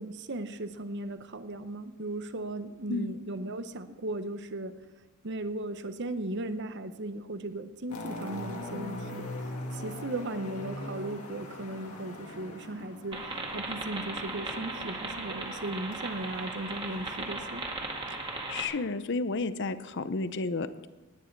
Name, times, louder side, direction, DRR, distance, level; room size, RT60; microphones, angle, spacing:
voice 1, 0.0-4.7 5.2-9.3 9.7-13.2 13.5-17.6, right 2 dB, 55° right, 10 dB, 0.8 m, -37 dB
sound 1, 7.9-17.3, left 1 dB, 80° left, 2.0 m, -42 dB
sound 2, 13.1-18.6, right 2 dB, 25° right, 2.0 m, -37 dB
voice 2, 18.2-20.9, left 3 dB, 55° left, 12 dB, 0.7 m, -32 dB
19.0 x 9.6 x 4.7 m, 1.2 s
head